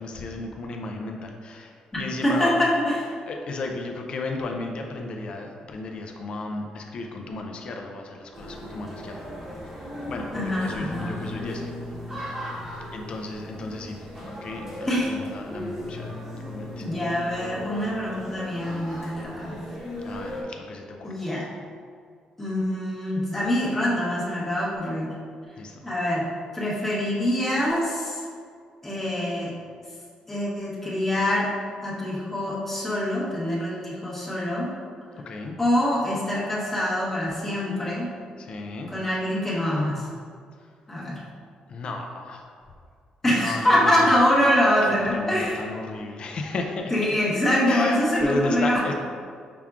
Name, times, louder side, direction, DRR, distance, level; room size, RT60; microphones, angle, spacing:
voice 1, 0.0-2.6 3.3-9.5 10.1-11.7 12.9-16.2 16.4-16.8 20.0-21.2 25.6-25.8 35.3-35.6 38.4-38.9 41.7-42.4 43.2-44.0 44.9-46.9 47.7-48.9, left 2 dB, 45° left, 2 dB, 0.4 m, -34 dB
voice 2, 2.2-3.0 10.3-11.2 14.9-15.1 16.8-19.5 21.0-21.5 22.4-25.1 25.8-26.3 26.5-28.2 28.8-29.5 30.3-31.5 31.8-34.7 35.6-38.1 38.9-40.1 40.9-41.2 43.2-45.7 46.9-48.9, left 1 dB, 15° left, -7 dB, 0.9 m, -24 dB
sound 1, 8.3-20.4, left 1 dB, 15° right, 1.0 m, -37 dB
5.7 x 3.5 x 2.3 m, 2.2 s
cardioid pair, 155°, 2 cm